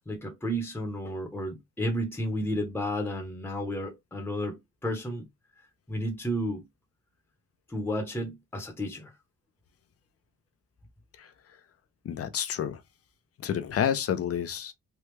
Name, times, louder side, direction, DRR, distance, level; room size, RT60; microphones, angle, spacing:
voice 1, 0.0-5.3 5.9-6.6 7.7-9.1, equal, 5° left, 0.9 m, -32 dB
voice 2, 12.0-12.8 13.4-14.7, left 9 dB, 50° left, 0.7 m, -29 dB
3.4 x 2.3 x 3.2 m
cardioid pair, 90°, 30 cm